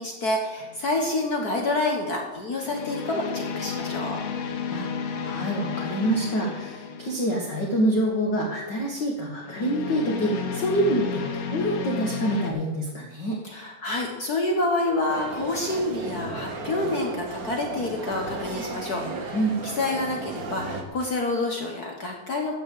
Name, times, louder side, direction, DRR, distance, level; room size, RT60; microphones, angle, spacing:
voice 1, 0.0-4.2 13.4-19.4 19.8-22.5, left 2 dB, 65° left, 1 dB, 0.9 m, -28 dB
sound 1, 0.6-1.0 2.6-7.7 9.4-12.5, left 6 dB, 85° left, 2.8 m, -32 dB
voice 2, 5.2-13.4 19.3-19.6, right 1 dB, 45° left, -2 dB, 1.7 m, -26 dB
sound 2, 15.1-20.8, right 3 dB, 65° right, 0.9 m, -34 dB
14.0 x 5.4 x 8.4 m, 1.2 s
omnidirectional pair, 3.7 m